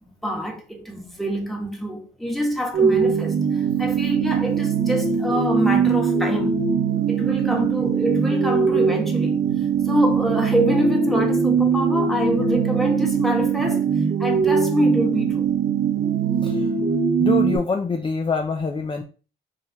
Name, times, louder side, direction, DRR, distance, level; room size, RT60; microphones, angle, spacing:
voice 1, 0.0-6.6 7.1-9.4 9.9-13.8 14.2-15.5, equal, ahead, 1.3 m, -25 dB
sound 1, 2.7-17.6, right 6 dB, 55° right, 0.8 m, -21 dB
voice 2, 17.2-19.0, left 4 dB, 25° left, 0.5 m, -25 dB
4.9 x 2.8 x 2.9 m
cardioid pair, 75°, 21 cm